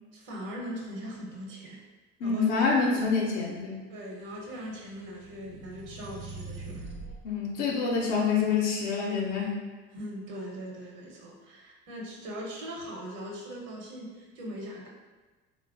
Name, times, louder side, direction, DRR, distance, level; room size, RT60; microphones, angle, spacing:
voice 1, 0.1-1.8 2.2-3.1 3.9-6.9 9.9-14.9, equal, 60° right, -2 dB, 0.8 m, -40 dB
voice 2, 2.2-3.8 7.2-9.6, left 5 dB, 75° left, -3 dB, 0.6 m, -27 dB
sound 1, 4.3-7.2, right 2 dB, 85° right, 0.5 m, -43 dB
3.1 x 2.1 x 2.4 m, 1.3 s
hypercardioid pair, 60°, 36 cm